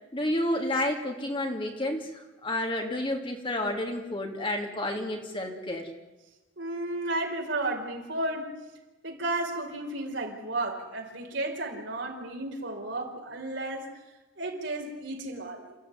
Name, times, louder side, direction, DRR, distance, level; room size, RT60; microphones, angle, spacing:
voice 1, 0.1-2.1 2.4-5.9, left 1 dB, 25° left, 2 dB, 2.9 m, -30 dB
voice 2, 6.6-8.6 9.0-13.9 14.4-15.8, right 2 dB, 65° right, 1 dB, 4.8 m, -33 dB
28.5 x 15.0 x 9.6 m, 1.1 s
head